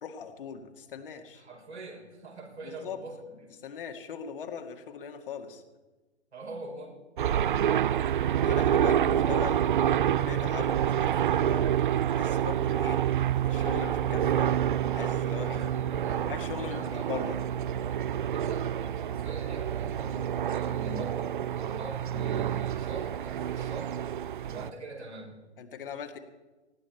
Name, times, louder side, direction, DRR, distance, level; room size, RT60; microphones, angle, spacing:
voice 1, 0.0-1.4 2.6-3.0 3.6-5.6 8.4-13.0 13.4-14.5 14.9-15.6 16.2-17.4 25.6-26.2, left 7 dB, 50° left, 5 dB, 2.1 m, -40 dB
voice 2, 1.3-3.5 6.3-7.0 15.3-16.3 16.6-17.1 18.3-24.0 24.4-25.4, right 2 dB, 75° right, -1 dB, 6.0 m, -43 dB
sound 1, 7.2-24.7, right 10 dB, 50° right, 0.4 m, -28 dB
19.5 x 15.0 x 4.5 m, 1.2 s
figure-of-eight pair, 130°, 34 cm